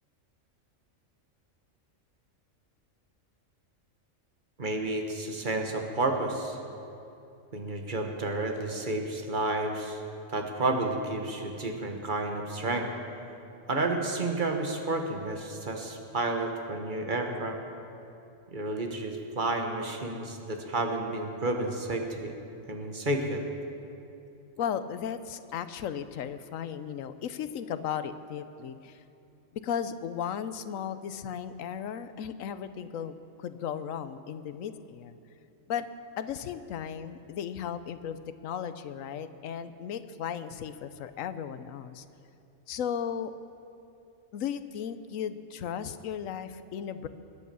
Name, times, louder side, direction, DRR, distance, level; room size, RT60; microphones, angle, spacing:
voice 1, 4.6-6.6 7.5-10.0 10.3-12.9 13.7-17.6 18.5-22.3 22.7-23.4, right 2 dB, 40° right, 3 dB, 1.5 m, -31 dB
voice 2, 24.6-29.0 29.5-35.2 35.7-35.9 36.2-42.0 42.7-43.3 44.3-47.1, left 8 dB, 80° left, 12 dB, 1.1 m, -35 dB
21.5 x 8.6 x 6.9 m, 2.8 s
omnidirectional pair, 1.4 m